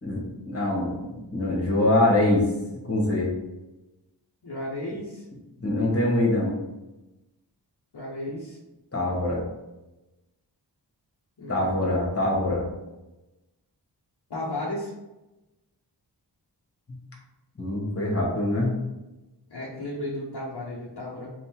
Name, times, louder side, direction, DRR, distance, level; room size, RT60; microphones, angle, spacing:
voice 1, 0.0-2.4 2.8-3.3 5.6-6.5 8.9-9.4 11.5-12.6 17.6-18.7, left 1 dB, 35° left, -2 dB, 1.4 m, -24 dB
voice 2, 4.4-5.2 7.9-8.6 11.4-11.7 14.3-14.9 19.5-21.3, left 1 dB, 65° left, -6 dB, 1.0 m, -34 dB
3.6 x 2.6 x 4.4 m, 1.0 s
wide cardioid pair, 55°, 43 cm